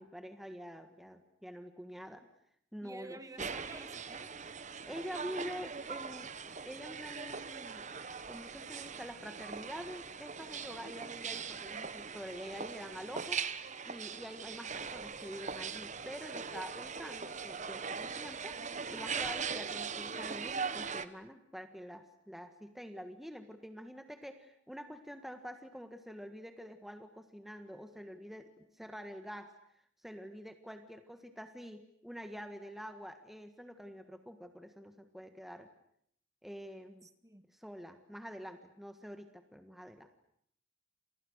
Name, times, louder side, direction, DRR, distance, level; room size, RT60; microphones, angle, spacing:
voice 1, 0.0-2.3 2.7-3.5 4.9-6.3 6.6-7.9 8.3-13.4 13.8-18.6 18.9-29.5 30.0-35.7 36.4-37.1 37.5-40.1, equal, ahead, 7 dB, 1.6 m, -46 dB
voice 2, 2.8-4.3 37.0-37.4, right 2 dB, 15° right, 10 dB, 1.8 m, -50 dB
sound 1, 3.4-21.1, right 5 dB, 35° right, 1.3 m, -41 dB
30.0 x 28.0 x 6.5 m, 0.70 s
head